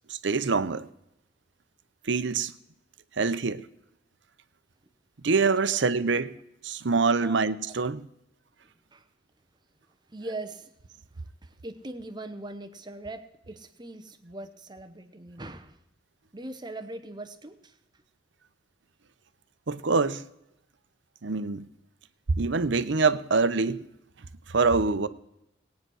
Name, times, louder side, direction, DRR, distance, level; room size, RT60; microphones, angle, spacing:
voice 1, 0.1-0.9 2.0-2.5 3.2-3.6 5.2-6.3 6.6-8.1 19.7-20.2 21.2-21.7 22.3-23.9 24.5-25.1, right 4 dB, 70° right, 0.7 m, -25 dB
voice 2, 8.6-9.1 10.1-10.7 11.1-15.8 16.3-18.0, right 2 dB, 20° right, 0.9 m, -41 dB
18.0 x 9.3 x 6.3 m
head